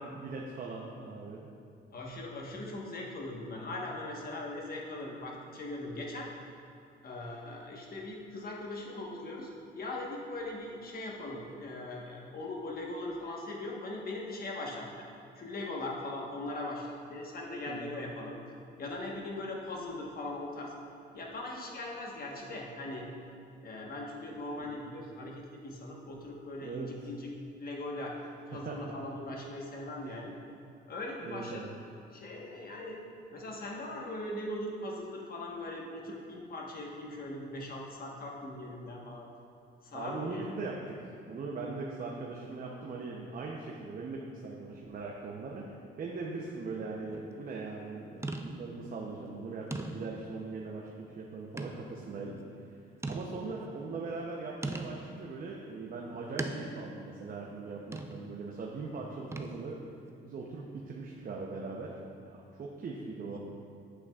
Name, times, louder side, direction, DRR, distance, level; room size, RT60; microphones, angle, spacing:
voice 1, 0.0-1.5 17.7-17.9 24.6-24.9 26.6-26.9 28.5-28.9 30.0-30.2 31.2-31.7 39.9-52.4 52.7-52.8 53.1-59.8 60.2-62.0 62.3-63.4, right 3 dB, 45° right, -2 dB, 0.7 m, -40 dB
voice 2, 1.9-6.3 7.0-14.9 15.4-18.4 18.8-20.7 21.1-23.1 23.6-27.3 27.6-28.2 28.5-30.3 30.9-31.7 32.1-33.0 33.3-39.3 39.8-40.4, left 2 dB, 50° left, -1 dB, 1.3 m, -40 dB
sound 1, 47.1-47.4 48.2-48.8 49.3-49.4 49.7-50.3 51.6-51.9 52.4-52.5 53.0-53.7 54.6-55.1 56.4-57.0 57.9-58.3 59.3-59.8, right 2 dB, 15° right, 0.4 m, -39 dB
8.4 x 7.6 x 2.4 m, 2.4 s
cardioid pair, 90°, 20 cm